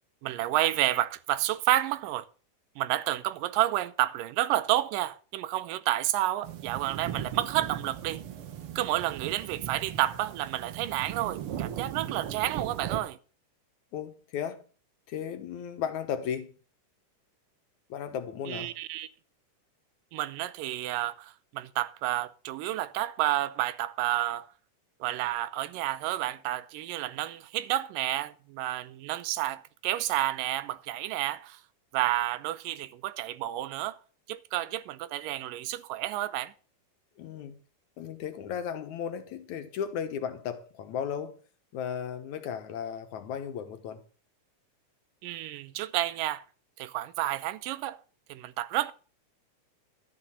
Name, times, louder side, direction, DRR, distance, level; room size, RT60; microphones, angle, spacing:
voice 1, 0.2-2.3 2.8-8.2 8.8-13.2 18.5-19.1 20.1-24.5 25.0-31.6 31.9-34.0 34.3-36.5 45.2-46.4 46.8-48.0 48.3-48.9, right 14 dB, 85° right, 2.4 m, -30 dB
sound 1, 6.4-13.0, right 10 dB, 65° right, 1.5 m, -38 dB
voice 2, 13.9-14.6 15.1-16.6 17.9-18.7 37.2-37.6 38.0-41.4 41.7-44.0, left 8 dB, 70° left, 2.4 m, -35 dB
12.5 x 5.9 x 7.9 m
omnidirectional pair, 3.7 m